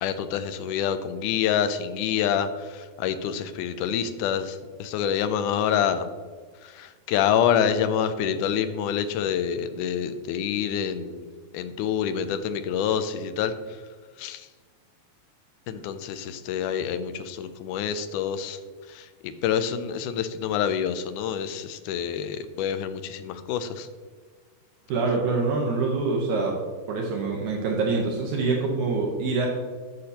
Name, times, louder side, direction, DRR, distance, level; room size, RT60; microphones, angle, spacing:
voice 1, 0.0-6.1 6.6-11.3 11.5-13.6 14.2-14.5 15.7-18.6 18.9-23.9, left 8 dB, 85° left, 10 dB, 2.1 m, -27 dB
voice 2, 24.9-26.6 26.9-29.5, right 3 dB, 75° right, -1 dB, 2.4 m, -25 dB
10.0 x 6.8 x 2.8 m, 1.5 s
omnidirectional pair, 3.5 m